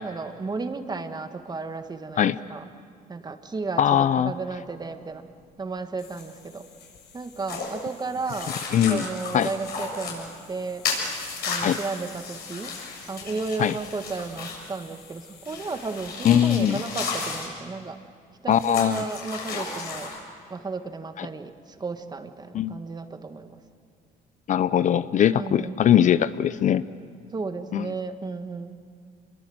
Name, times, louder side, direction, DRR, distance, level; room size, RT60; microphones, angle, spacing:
voice 1, 0.0-2.7 3.1-5.2 5.6-6.6 7.1-10.9 11.5-12.7 13.1-18.0 18.4-20.1 20.5-23.6 25.3-25.8 27.3-28.7, right 4 dB, 25° right, 8 dB, 1.5 m, -33 dB
sound 1, 3.8-16.1, left 7 dB, 90° left, 4.6 m, -51 dB
voice 2, 3.8-4.3 8.7-9.0 9.3-9.5 11.6-11.8 13.6-13.7 16.2-16.8 18.5-19.0 21.2-21.3 22.5-22.8 24.5-26.8 27.7-27.9, left 10 dB, 50° left, 15 dB, 0.6 m, -21 dB
sound 2, 7.5-7.8 8.3-10.2 10.8-14.7 15.5-17.5 18.5-20.2, left 4 dB, 65° left, 7.1 m, -34 dB
27.0 x 22.5 x 7.8 m, 2.3 s
cardioid pair, 110°, 17 cm